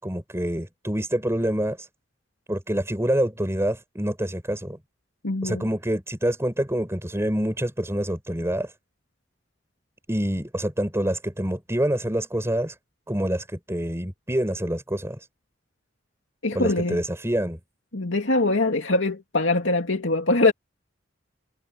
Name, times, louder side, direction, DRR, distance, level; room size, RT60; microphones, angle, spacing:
voice 1, 0.0-1.9 2.5-4.8 5.4-8.7 10.1-12.7 13.1-15.2 16.5-17.6, right 1 dB, 15° right, 4.6 m, -26 dB
voice 2, 5.2-5.7 16.4-17.0 17.9-20.5, left 2 dB, 80° left, 2.5 m, -23 dB
head